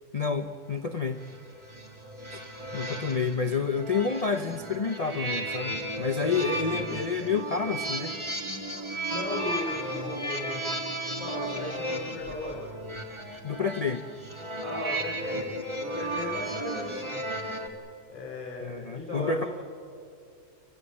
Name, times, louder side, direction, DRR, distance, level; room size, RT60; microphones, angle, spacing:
voice 1, 0.1-1.3 2.3-2.4 2.7-8.2 13.4-14.0 18.6-19.5, left 5 dB, 40° left, 7 dB, 0.6 m, -29 dB
sound 1, 1.1-17.7, right 1 dB, 20° right, 1.8 m, -34 dB
voice 2, 9.1-10.6 11.2-12.6 14.6-17.2 18.1-19.5, left 1 dB, 20° left, -5 dB, 4.8 m, -36 dB
29.5 x 15.0 x 8.7 m, 2.4 s
omnidirectional pair, 1.6 m